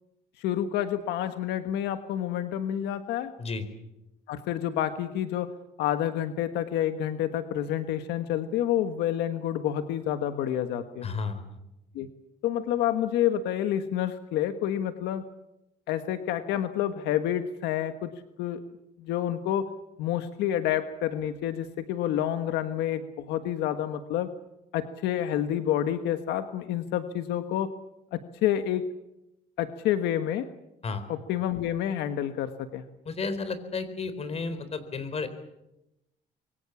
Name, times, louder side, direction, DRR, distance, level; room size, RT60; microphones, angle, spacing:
voice 1, 0.4-3.3 4.3-5.5 5.8-11.1 11.9-12.1 12.4-15.2 15.9-18.1 18.4-18.6 19.0-19.7 20.0-24.3 24.7-27.7 28.1-28.9 29.6-30.5 31.1-32.8, left 11 dB, 85° left, 9 dB, 1.5 m, -28 dB
voice 2, 11.0-11.4 30.8-31.0 33.1-35.3, left 4 dB, 40° left, 12 dB, 4.0 m, -32 dB
26.0 x 23.5 x 7.2 m, 0.89 s
cardioid pair, 110°, 17 cm